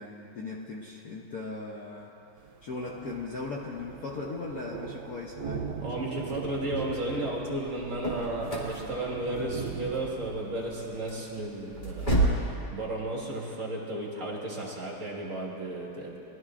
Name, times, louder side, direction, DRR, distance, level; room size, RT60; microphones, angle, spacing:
voice 1, 0.0-2.1 2.6-5.7, left 3 dB, 60° left, -2 dB, 1.0 m, -38 dB
Thunder, 2.4-12.4, right 6 dB, 70° right, 1.1 m, -41 dB
voice 2, 5.8-16.2, right 1 dB, 40° right, -4 dB, 1.9 m, -34 dB
sound 1, 7.8-12.5, right 1 dB, 20° left, 2.4 m, -31 dB
20.5 x 12.5 x 2.5 m, 2.8 s
omnidirectional pair, 2.3 m